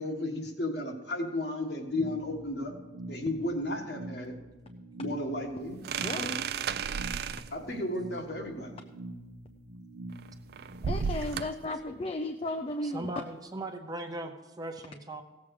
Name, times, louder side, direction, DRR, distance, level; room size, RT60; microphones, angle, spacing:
voice 1, 0.0-2.7 3.1-4.4 5.0-5.8 6.1-6.3 7.5-8.7, left 1 dB, 65° left, 2 dB, 1.6 m, -33 dB
sound 1, 1.9-10.9, right 1 dB, 75° right, 0.8 m, -45 dB
sound 2, 5.8-7.6 10.1-11.7, right 6 dB, 55° right, 0.4 m, -33 dB
voice 2, 10.8-13.1, left 1 dB, 30° left, 6 dB, 0.4 m, -34 dB
voice 3, 12.8-15.2, right 2 dB, 20° right, 5 dB, 0.8 m, -38 dB
16.5 x 7.4 x 4.9 m, 1.2 s
head